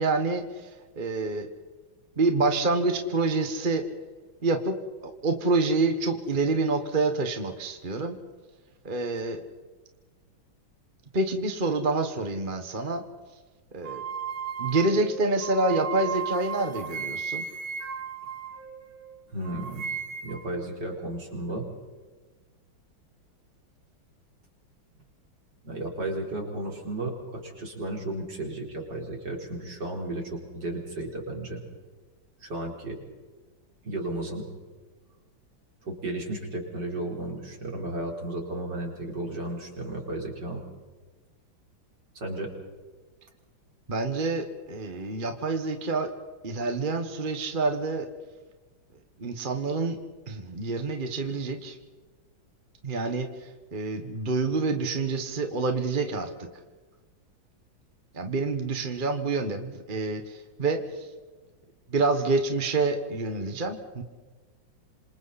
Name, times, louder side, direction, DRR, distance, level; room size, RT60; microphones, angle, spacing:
voice 1, 0.0-1.5 2.2-3.8 4.4-4.8 5.0-8.1 8.8-9.4 11.1-13.0 13.7-14.0 14.6-17.4 43.9-46.1 46.4-48.1 49.2-50.0 50.3-51.8 52.8-56.3 58.1-61.1 61.9-64.0, right 3 dB, 30° right, 6 dB, 1.4 m, -27 dB
sound 1, 13.8-19.1 19.4-20.5, right 6 dB, 85° right, 2.3 m, -35 dB
voice 2, 19.3-19.9 20.2-21.7 25.6-31.6 32.4-33.0 33.8-34.4 35.8-40.6 42.1-42.5, right 1 dB, 55° right, 0 dB, 4.9 m, -34 dB
27.5 x 27.0 x 4.2 m, 1.3 s
omnidirectional pair, 2.2 m